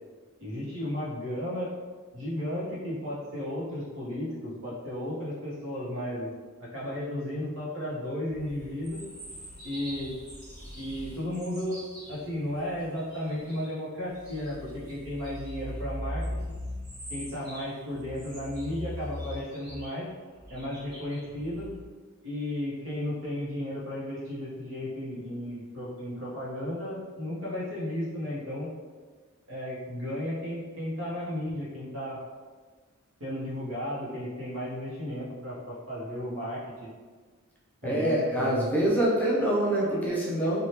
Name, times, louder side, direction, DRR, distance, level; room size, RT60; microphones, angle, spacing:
voice 1, 0.4-1.7 2.1-6.3 6.6-9.0 9.6-10.1 10.8-11.8 12.1-16.4 17.1-20.1 20.5-21.7 22.2-28.7 29.5-32.2 33.2-36.9 37.8-38.5, left 1 dB, 70° right, -6 dB, 1.0 m, -34 dB
sound 1, 8.3-13.7 14.1-21.8, equal, 45° right, 1.4 m, -41 dB
voice 2, 37.8-40.6, right 1 dB, 10° left, -6 dB, 0.4 m, -25 dB
3.2 x 2.4 x 2.8 m, 1.5 s
head